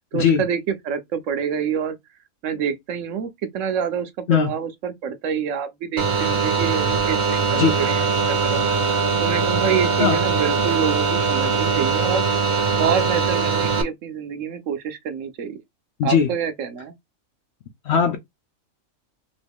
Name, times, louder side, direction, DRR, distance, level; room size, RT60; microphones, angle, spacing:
voice 1, 0.1-2.0 2.4-8.8 9.2-12.5 12.8-15.6 16.0-16.9, right 7 dB, 70° right, 0.9 m, -27 dB
sound 1, 6.0-13.8, right 5 dB, 45° right, 0.7 m, -21 dB
voice 2, 16.0-16.3 17.9-18.2, left 7 dB, 65° left, 0.7 m, -18 dB
3.0 x 2.5 x 3.4 m
omnidirectional pair, 1.5 m